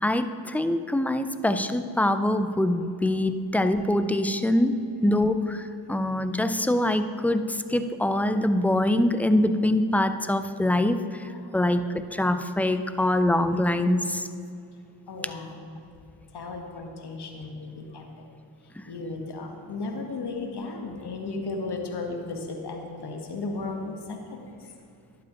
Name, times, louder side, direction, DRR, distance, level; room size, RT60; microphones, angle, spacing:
voice 1, 0.0-11.3 11.5-14.2 18.8-18.9, left 1 dB, 5° left, 10 dB, 0.4 m, -24 dB
voice 2, 15.1-15.6 16.3-18.0 18.9-23.9 24.3-24.4, left 3 dB, 60° left, 3 dB, 1.3 m, -34 dB
11.5 x 7.5 x 2.9 m, 2.5 s
supercardioid pair, 45°, 46 cm